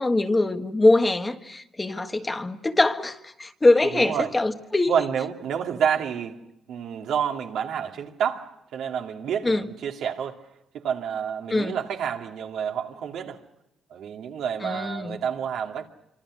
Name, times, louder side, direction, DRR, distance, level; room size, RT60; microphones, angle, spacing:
voice 1, 0.0-4.9 9.4-9.7 11.5-11.8 14.6-15.2, left 2 dB, 20° left, 1.6 m, -23 dB
voice 2, 3.9-4.3 4.9-6.4 6.7-10.4 10.7-13.4 13.9-15.9, right 8 dB, 75° right, 2.4 m, -29 dB
26.0 x 25.0 x 6.3 m
cardioid pair, 90°, 0 cm